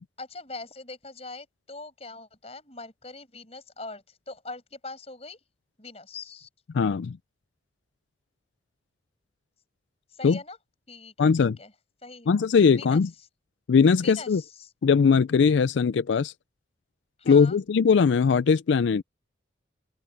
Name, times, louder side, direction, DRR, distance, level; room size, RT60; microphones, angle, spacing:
voice 1, 0.2-5.4 5.8-6.5 10.1-10.6 10.9-11.7 12.0-12.3 12.7-13.0 14.0-14.7 17.2-17.6, left 3 dB, 35° left, 5.6 m, -42 dB
voice 2, 6.7-7.2 10.2-10.4 11.2-11.6 12.3-13.1 13.7-14.4 14.8-16.3 17.3-19.0, left 5 dB, 75° left, 0.4 m, -20 dB
open air
head